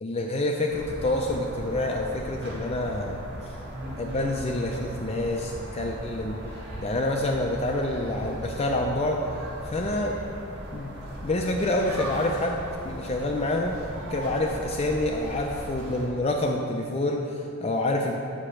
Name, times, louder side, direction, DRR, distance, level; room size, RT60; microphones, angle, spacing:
voice 1, 0.0-3.2 4.0-6.4 6.8-9.2 9.6-10.2 10.7-10.9 11.2-12.6 12.8-13.8 14.1-18.2, left 1 dB, 30° left, 1 dB, 0.4 m, -27 dB
sound 1, 0.7-16.1, equal, 50° right, 1.6 m, -38 dB
7.4 x 5.0 x 5.8 m, 2.7 s
head